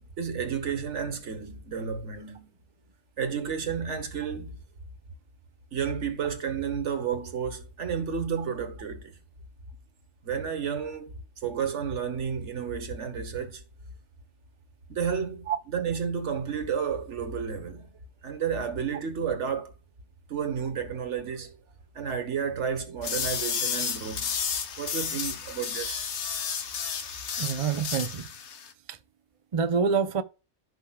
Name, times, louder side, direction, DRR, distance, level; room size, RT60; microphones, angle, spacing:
voice 1, 0.0-2.5 3.2-4.6 5.7-9.2 10.2-13.6 14.9-17.9 18.2-19.7 20.3-21.5 21.9-24.3 24.8-26.0 27.0-27.1, right 7 dB, 85° right, 1.6 m, -31 dB
sound 1, 23.0-28.7, left 7 dB, 75° left, 1.2 m, -32 dB
voice 2, 27.4-28.3 29.5-30.2, right 6 dB, 35° right, 0.6 m, -26 dB
15.5 x 5.3 x 2.3 m
omnidirectional pair, 1.2 m